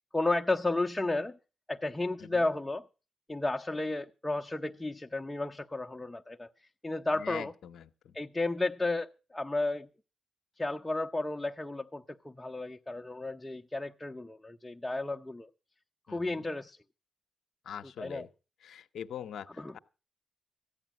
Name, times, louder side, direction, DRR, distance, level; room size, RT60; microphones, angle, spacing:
voice 1, 0.1-1.4 1.7-2.8 3.3-7.5 8.1-9.9 10.6-15.5 16.1-16.8 18.0-18.2 19.6-19.7, left 2 dB, 15° left, 0.7 m, -33 dB
voice 2, 7.1-8.2 16.1-16.5 17.6-18.3 18.6-19.8, left 9 dB, 75° left, 0.7 m, -43 dB
14.0 x 10.0 x 5.9 m
supercardioid pair, 50°, 0 cm